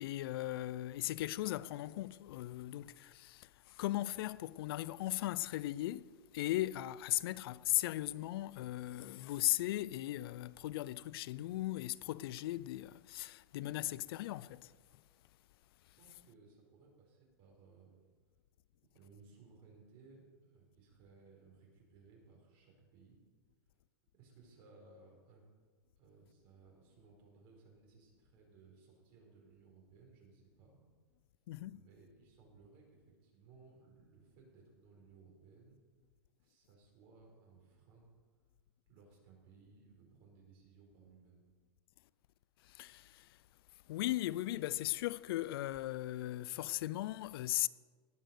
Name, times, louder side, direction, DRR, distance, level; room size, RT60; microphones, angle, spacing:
voice 1, 0.0-14.7 31.5-31.8 42.6-43.4 43.9-47.7, left 15 dB, 65° left, 0.5 m, -38 dB
voice 2, 16.0-18.0 18.9-23.2 23.7-23.8 24.1-25.4 26.0-30.8 31.7-35.8 36.4-38.1 38.9-41.4, right 4 dB, 45° right, 4.7 m, -62 dB
18.5 x 6.3 x 6.6 m
hypercardioid pair, 130°, 13 cm